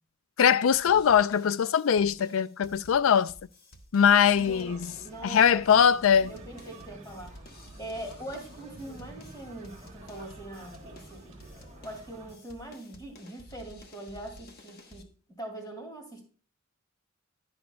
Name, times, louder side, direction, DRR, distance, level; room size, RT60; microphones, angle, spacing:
voice 1, 0.4-3.3 3.9-4.9 5.2-6.3, left 8 dB, 70° left, 0.4 m, -22 dB
sound 1, 0.7-15.0, left 1 dB, 45° left, 1.2 m, -53 dB
sound 2, 4.2-12.3, right 1 dB, 30° right, 1.5 m, -49 dB
voice 2, 4.4-4.7 5.0-6.0 6.3-7.4 7.8-15.1 15.4-16.2, right 1 dB, 20° left, 2.5 m, -42 dB
11.0 x 10.0 x 2.3 m
head